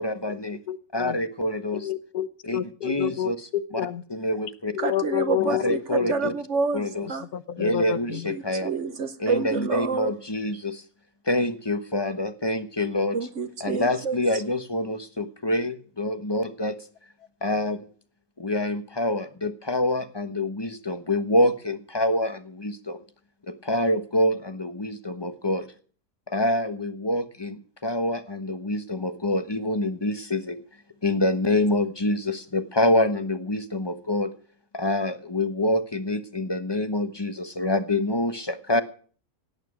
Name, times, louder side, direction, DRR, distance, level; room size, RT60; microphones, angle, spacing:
voice 1, 0.0-0.6 0.9-1.9 2.4-3.5 4.1-4.7 5.5-6.3 6.7-7.1 7.6-8.7 9.2-10.8 11.2-13.2 13.6-16.9 17.4-17.9 18.4-23.0 23.5-25.7 26.3-30.6 31.0-34.3 34.7-38.8, left 1 dB, 20° left, 1.0 m, -26 dB
voice 2, 0.7-1.2 1.7-4.0 4.7-6.1 7.3-8.3, left 11 dB, 70° left, 1.3 m, -29 dB
voice 3, 4.8-7.3 8.1-10.1 13.1-14.2, right 4 dB, 50° right, 1.1 m, -28 dB
17.5 x 9.3 x 6.2 m
omnidirectional pair, 1.7 m